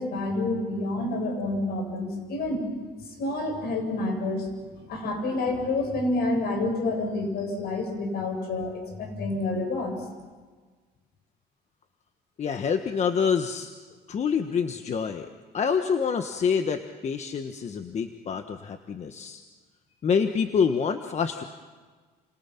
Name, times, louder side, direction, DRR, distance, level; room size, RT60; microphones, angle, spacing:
voice 1, 0.0-2.6 3.2-9.9, left 2 dB, 70° left, 4 dB, 7.8 m, -28 dB
voice 2, 12.4-13.7 14.1-15.3 15.5-19.4 20.0-21.4, left 6 dB, 40° left, 7 dB, 1.4 m, -26 dB
30.0 x 28.0 x 5.9 m, 1.4 s
cardioid pair, 110°, 17 cm